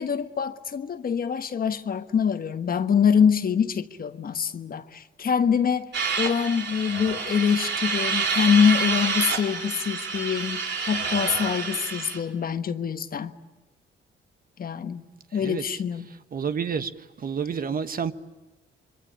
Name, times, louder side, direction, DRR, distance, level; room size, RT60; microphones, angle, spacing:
voice 1, 0.0-5.9 6.2-10.6 10.8-13.4 14.6-16.2, left 7 dB, 45° left, 1.3 m, -24 dB
sound 1, 5.9-12.2, right 5 dB, 60° right, 4.5 m, -28 dB
voice 2, 15.3-15.6 16.3-16.9 17.2-18.1, right 6 dB, 45° right, 1.3 m, -29 dB
26.5 x 23.5 x 9.0 m
cardioid pair, 90°, 20 cm